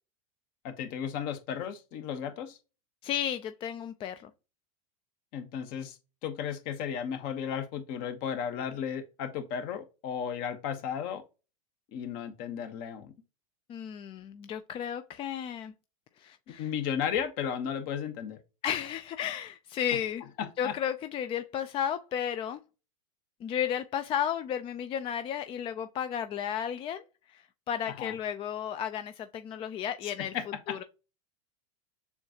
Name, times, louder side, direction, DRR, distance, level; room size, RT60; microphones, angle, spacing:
voice 1, 0.6-2.6 5.3-11.2 11.9-13.1 16.5-18.4 20.4-20.7 27.9-28.2 30.0-30.8, left 8 dB, 50° left, 0.9 m, -34 dB
voice 2, 3.0-4.3 13.7-15.7 16.2-16.7 18.6-20.2 20.6-22.6 23.4-27.0 27.3-30.3 30.7-30.8, left 9 dB, 30° left, 0.4 m, -33 dB
6.9 x 2.3 x 2.7 m
hypercardioid pair, 95°, 19 cm